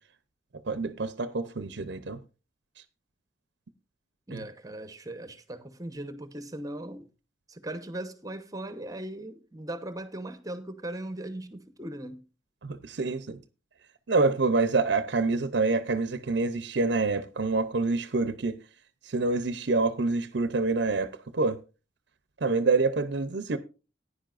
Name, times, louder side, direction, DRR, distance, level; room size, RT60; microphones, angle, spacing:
voice 1, 0.7-2.2 4.3-4.4 12.6-13.4 14.1-18.6 19.0-21.6 22.4-23.6, right 3 dB, 65° right, 0.7 m, -27 dB
voice 2, 4.3-7.1 7.5-12.2, right 1 dB, 20° right, 1.0 m, -38 dB
15.0 x 10.0 x 2.5 m
head